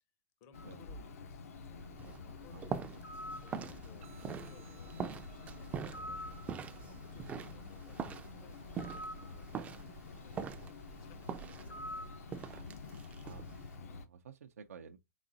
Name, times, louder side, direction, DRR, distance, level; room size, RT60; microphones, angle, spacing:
voice 1, 0.4-9.8 10.2-12.5 12.7-12.9, left 6 dB, 40° left, 0.7 m, -62 dB
Bird, 0.5-14.1, left 3 dB, 80° left, 0.8 m, -47 dB
sound 1, 1.5-13.8, right 6 dB, 20° right, 0.3 m, -45 dB
sound 2, 4.0-12.0, right 15 dB, 70° right, 0.9 m, -66 dB
voice 2, 13.2-15.0, right 6 dB, 85° right, 0.4 m, -53 dB
3.9 x 3.7 x 2.6 m
hypercardioid pair, 130°, 8 cm